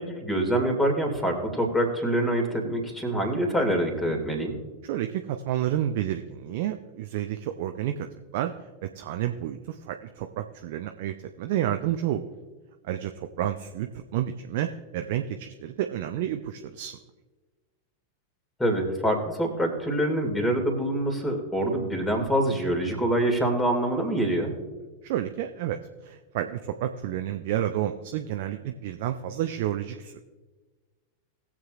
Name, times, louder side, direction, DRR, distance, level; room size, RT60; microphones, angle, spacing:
voice 1, 0.0-4.6 18.6-24.5, right 1 dB, 10° left, 3 dB, 2.4 m, -25 dB
voice 2, 4.8-12.2 12.8-17.0 25.0-30.2, right 11 dB, 50° right, 6 dB, 0.5 m, -30 dB
20.0 x 7.5 x 2.5 m, 1.3 s
figure-of-eight pair, 90°, 0 cm